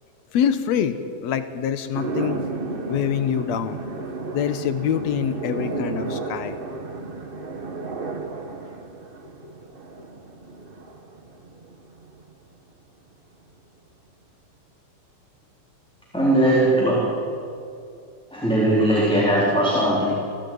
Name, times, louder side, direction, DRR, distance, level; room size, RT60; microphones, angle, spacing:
voice 1, 0.3-2.4 2.9-3.8 4.3-6.6 9.4-9.5, left 8 dB, 70° left, 11 dB, 2.3 m, -25 dB
sound 1, 1.9-12.3, right 3 dB, 35° right, 0.9 m, -33 dB
voice 2, 16.1-17.2 18.3-20.1, right 1 dB, ahead, -5 dB, 3.8 m, -19 dB
29.5 x 13.5 x 9.3 m, 2.5 s
omnidirectional pair, 3.4 m